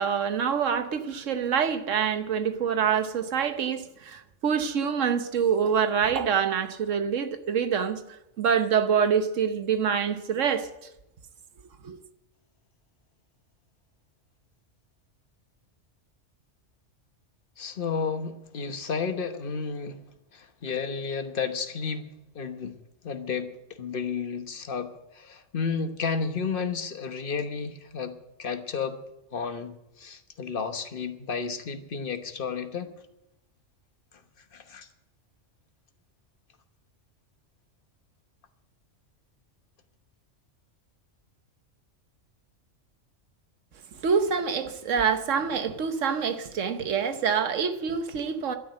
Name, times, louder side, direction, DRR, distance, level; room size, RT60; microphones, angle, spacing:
voice 1, 0.0-8.0 8.4-10.7 11.8-12.0 44.0-48.6, right 7 dB, 85° right, 1.3 m, -26 dB
voice 2, 17.6-20.0 20.3-22.7 23.0-23.5 23.8-29.0 29.3-32.9 34.5-34.9, left 5 dB, 45° left, 1.3 m, -32 dB
12.5 x 10.0 x 8.9 m
omnidirectional pair, 1.3 m